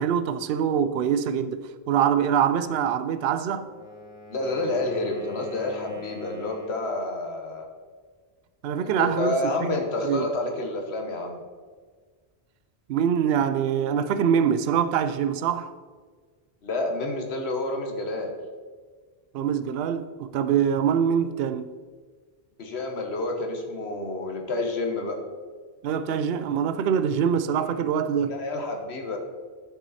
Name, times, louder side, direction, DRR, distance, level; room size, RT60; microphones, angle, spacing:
voice 1, 0.0-3.7 8.6-9.4 9.7-9.8 10.0-10.3 12.9-15.7 19.3-21.7 25.8-28.4, right 8 dB, 70° right, 0.8 m, -24 dB
Wind instrument woodwind instrument, 3.4-7.0, left 4 dB, 5° right, 1.8 m, -42 dB
voice 2, 4.3-7.7 8.8-11.4 16.6-18.4 22.6-25.2 28.3-29.2, left 2 dB, 85° left, 1.5 m, -29 dB
11.5 x 6.2 x 4.2 m
omnidirectional pair, 1.1 m